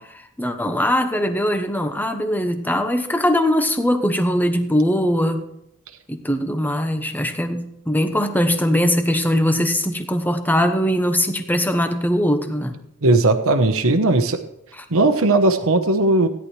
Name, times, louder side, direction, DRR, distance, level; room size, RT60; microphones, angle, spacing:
voice 1, 0.0-5.4 6.1-12.7, equal, 10° left, 7 dB, 1.1 m, -21 dB
voice 2, 13.0-14.4 14.9-16.3, right 2 dB, 65° right, 8 dB, 1.1 m, -17 dB
16.5 x 10.5 x 3.3 m, 0.79 s
head